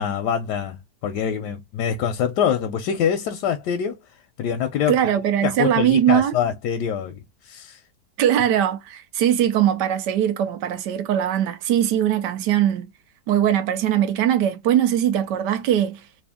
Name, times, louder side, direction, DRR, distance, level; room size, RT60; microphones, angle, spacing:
voice 1, 0.0-4.0 4.4-5.0 5.4-7.8, left 8 dB, 85° left, 1.2 m, -25 dB
voice 2, 4.9-6.3 8.2-12.9 13.3-16.0, right 10 dB, 85° right, 1.3 m, -20 dB
3.4 x 2.5 x 3.5 m
omnidirectional pair, 1.8 m